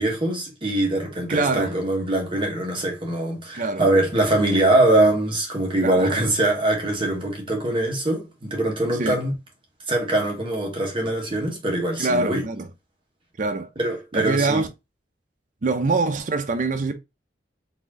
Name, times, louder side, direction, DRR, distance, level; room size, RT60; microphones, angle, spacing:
voice 1, 0.0-9.3 9.9-12.4 13.8-14.6, right 1 dB, 30° right, 1.1 m, -22 dB
voice 2, 1.3-1.7 3.5-3.8 5.8-6.3 9.0-9.2 12.0-12.7 13.4-13.7 14.1-14.7 15.6-16.9, right 3 dB, 45° right, 0.5 m, -24 dB
4.1 x 2.6 x 3.6 m
head